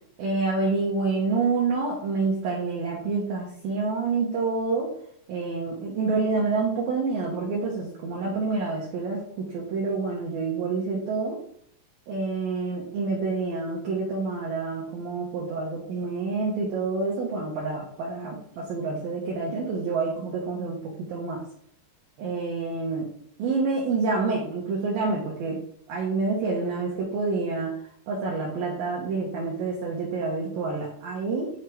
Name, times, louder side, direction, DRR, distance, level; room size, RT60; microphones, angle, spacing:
voice 1, 0.2-4.9 5.3-11.4 12.1-21.4 22.2-23.1 23.4-25.6 25.9-27.7 28.1-31.5, right 4 dB, 75° right, -4 dB, 2.2 m, -28 dB
9.8 x 3.3 x 4.6 m, 0.66 s
omnidirectional pair, 5.6 m